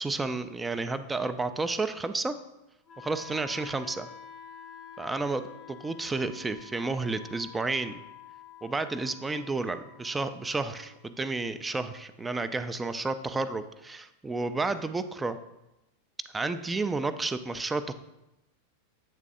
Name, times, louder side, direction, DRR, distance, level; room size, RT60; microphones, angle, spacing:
voice 1, 0.0-2.3 3.0-4.1 5.0-8.0 8.6-15.4 16.3-17.9, right 3 dB, 10° right, 11 dB, 0.3 m, -31 dB
Wind instrument woodwind instrument, 2.9-12.9, left 8 dB, 25° left, 0.6 m, -50 dB
8.1 x 3.3 x 3.7 m, 0.95 s
figure-of-eight pair, 90°, 0 cm